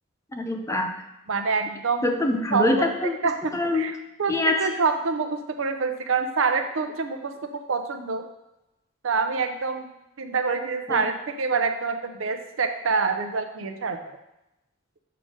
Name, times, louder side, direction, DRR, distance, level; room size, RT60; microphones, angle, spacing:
voice 1, 0.3-0.9 2.0-3.2 3.5-3.9 4.3-4.6 10.9-11.0, left 2 dB, 15° left, 4 dB, 0.5 m, -24 dB
voice 2, 1.3-2.2 2.5-2.9 3.2-7.3 7.7-8.3 9.0-9.9 10.2-14.2, right 4 dB, 85° right, 7 dB, 0.6 m, -26 dB
6.6 x 3.8 x 5.0 m, 0.92 s
head